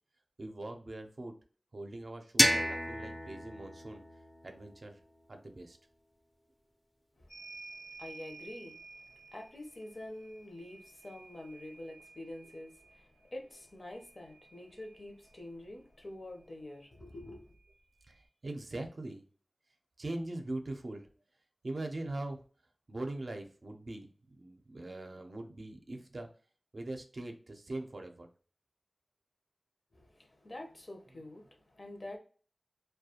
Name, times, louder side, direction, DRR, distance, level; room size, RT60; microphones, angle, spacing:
voice 1, 0.4-1.4 1.7-4.0 4.4-5.0 5.3-5.8 18.1-19.2 20.0-21.1 21.6-22.4 22.9-26.3 26.7-28.3, right 2 dB, 65° right, 0.4 m, -41 dB
sound 1, 2.4-5.2, equal, 15° left, 0.4 m, -31 dB
voice 2, 7.2-17.6 29.9-32.2, left 1 dB, 55° left, 0.6 m, -47 dB
sound 2, 7.3-15.4 16.7-16.8 17.1-18.1, right 3 dB, 90° left, 1.0 m, -54 dB
2.3 x 2.2 x 2.7 m
wide cardioid pair, 60°, 0 cm